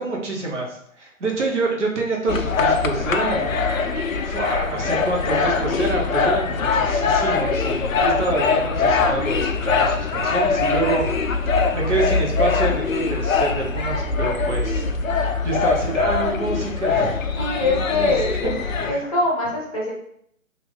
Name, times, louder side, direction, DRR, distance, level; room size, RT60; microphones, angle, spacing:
voice 1, 0.0-3.6 4.2-11.1 11.5-17.2 17.6-18.5 18.8-19.0, right 3 dB, 55° right, -1 dB, 1.0 m, -27 dB
sound 1, 2.3-18.9, left 4 dB, 70° left, 0.5 m, -22 dB
voice 2, 17.4-18.6 18.9-19.9, left 2 dB, 25° left, -5 dB, 0.8 m, -23 dB
3.0 x 2.6 x 3.2 m, 0.70 s
figure-of-eight pair, 150°, 42 cm